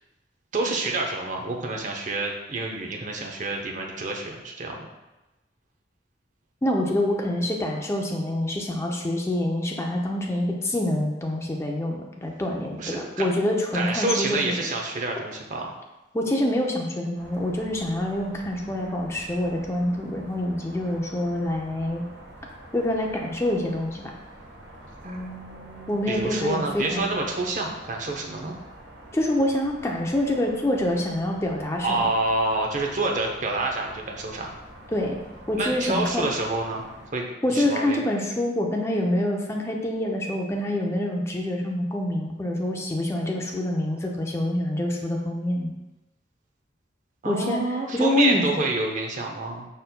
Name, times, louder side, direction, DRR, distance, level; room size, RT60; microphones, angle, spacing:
voice 1, 0.5-4.9 12.8-13.2 13.7-15.7 25.0-28.5 31.8-34.5 35.5-36.8 37.1-38.0 47.2-49.7, right 2 dB, 45° right, 1 dB, 0.6 m, -28 dB
voice 2, 6.6-14.6 16.1-22.0 22.7-24.1 25.9-27.1 29.1-32.1 34.9-35.2 35.5-36.3 37.4-45.7 47.2-47.6 47.9-48.4, left 1 dB, 15° left, 0 dB, 0.5 m, -26 dB
sound 1, 17.1-37.1, right 1 dB, 85° right, 0.9 m, -46 dB
5.1 x 4.3 x 2.2 m, 1.0 s
head